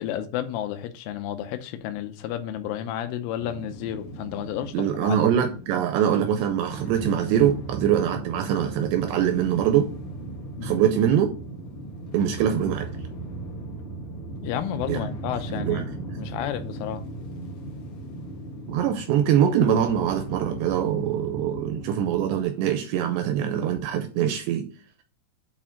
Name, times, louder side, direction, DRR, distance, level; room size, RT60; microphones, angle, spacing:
voice 1, 0.0-5.2 10.6-10.8 14.4-15.8 16.2-17.0, left 10 dB, 90° left, 3.4 m, -31 dB
sound 1, 3.4-22.4, right 1 dB, 65° left, 1.9 m, -37 dB
voice 2, 4.7-9.9 10.6-11.3 12.1-12.9 14.9-15.0 15.5-15.9 16.2-16.3 18.7-24.7, right 9 dB, 85° right, 2.5 m, -23 dB
8.5 x 4.4 x 3.7 m
omnidirectional pair, 5.5 m